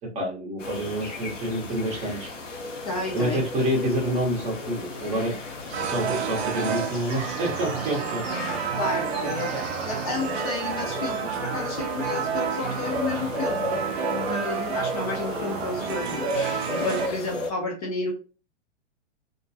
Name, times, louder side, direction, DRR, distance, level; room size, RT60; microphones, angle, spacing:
voice 1, 0.1-2.3 3.1-5.3 5.7-8.2 9.5-9.6, right 1 dB, 20° right, -1 dB, 0.7 m, -28 dB
sound 1, 0.6-17.5, left 2 dB, 90° left, 0.7 m, -34 dB
voice 2, 2.8-3.4 8.7-9.5 9.8-13.7 14.1-18.1, left 3 dB, 30° left, 1 dB, 0.5 m, -31 dB
sound 2, 5.7-17.1, right 7 dB, 60° right, 0.5 m, -30 dB
2.4 x 2.2 x 2.6 m, 0.35 s
figure-of-eight pair, 110°, 36 cm